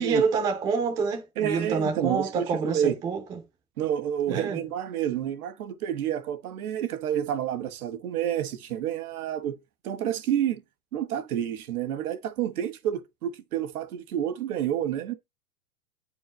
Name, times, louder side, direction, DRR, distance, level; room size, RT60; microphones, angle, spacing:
voice 1, 0.0-3.4 4.3-4.6, right 5 dB, 10° right, 0.5 m, -27 dB
voice 2, 1.4-2.9 3.8-9.5 9.8-10.6 10.9-15.1, right 10 dB, 80° right, 1.6 m, -29 dB
9.8 x 4.6 x 2.9 m
supercardioid pair, 165°, 43 cm